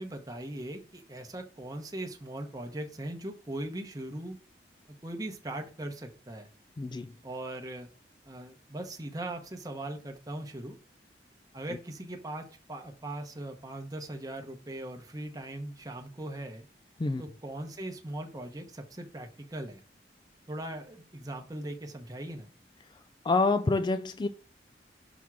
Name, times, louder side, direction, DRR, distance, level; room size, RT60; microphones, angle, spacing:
voice 1, 0.0-4.4 5.0-6.5 7.2-7.9 8.2-10.8 11.5-16.7 17.2-19.8 20.5-22.5, right 1 dB, 20° right, 0.9 m, -39 dB
voice 2, 6.8-7.1 17.0-17.2 23.2-24.3, left 3 dB, 25° left, 0.3 m, -27 dB
6.1 x 3.6 x 6.0 m
head